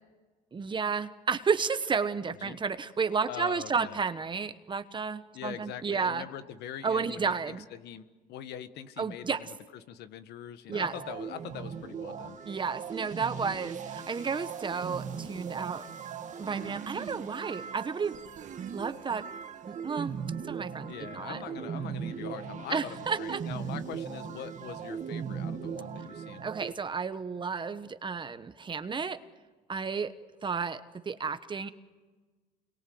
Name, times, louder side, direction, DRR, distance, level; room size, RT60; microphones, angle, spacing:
voice 1, 0.5-6.2 6.8-7.6 9.0-9.4 10.7-10.9 12.5-15.9 16.4-18.2 18.7-19.2 19.7-20.1 20.5-21.4 22.7-23.4 26.4-29.2 29.7-30.1 30.4-31.7, right 5 dB, 30° right, 12 dB, 1.2 m, -32 dB
voice 2, 3.3-4.0 5.3-9.5 9.9-12.4 20.9-26.4, left 10 dB, 80° left, 11 dB, 1.5 m, -42 dB
sound 1, 10.7-26.7, right 7 dB, 45° right, 1.6 m, -39 dB
29.5 x 22.5 x 7.9 m, 1.3 s
cardioid pair, 110°, 17 cm